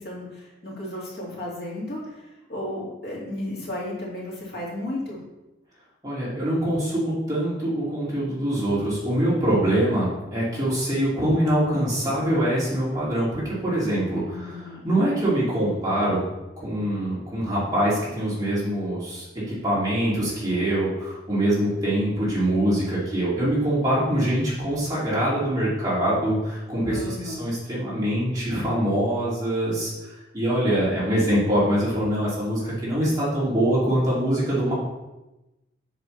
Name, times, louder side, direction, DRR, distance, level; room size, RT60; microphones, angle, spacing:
voice 1, 0.0-5.2 14.3-14.9 26.9-27.5, left 1 dB, 55° left, -6 dB, 2.3 m, -34 dB
voice 2, 6.0-16.2 16.6-34.7, right 1 dB, 20° right, -9 dB, 2.7 m, -24 dB
7.6 x 6.1 x 3.3 m, 1.0 s
head